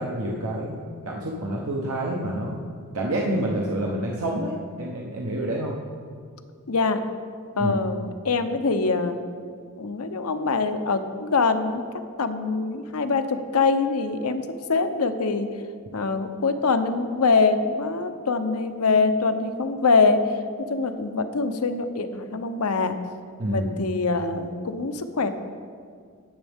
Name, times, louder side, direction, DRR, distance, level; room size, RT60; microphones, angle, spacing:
voice 1, 0.0-2.6 2.9-4.5 4.8-5.8 7.6-7.7 23.4-23.7, right 1 dB, 75° right, -2 dB, 1.0 m, -28 dB
voice 2, 6.7-7.0 7.6-9.2 9.8-11.8 12.2-15.5 15.9-20.3 20.7-23.0 23.5-25.3, left 4 dB, 80° left, 8 dB, 0.8 m, -24 dB
18.5 x 7.2 x 3.6 m, 2.1 s
head